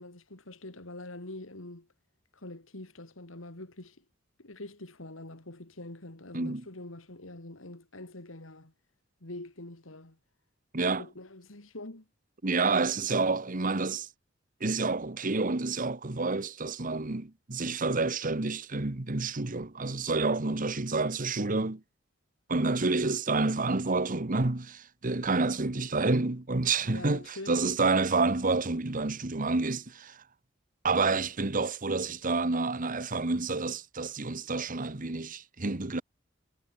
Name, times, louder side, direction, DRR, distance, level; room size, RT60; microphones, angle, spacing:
voice 1, 0.0-1.9 2.3-4.0 4.4-8.7 9.2-10.2 10.8-12.1 26.8-27.7, left 2 dB, 85° left, 3.0 m, -44 dB
voice 2, 6.3-6.6 10.7-11.0 12.4-14.1 14.6-21.8 22.5-30.2 30.8-36.0, right 3 dB, 45° right, 1.3 m, -29 dB
head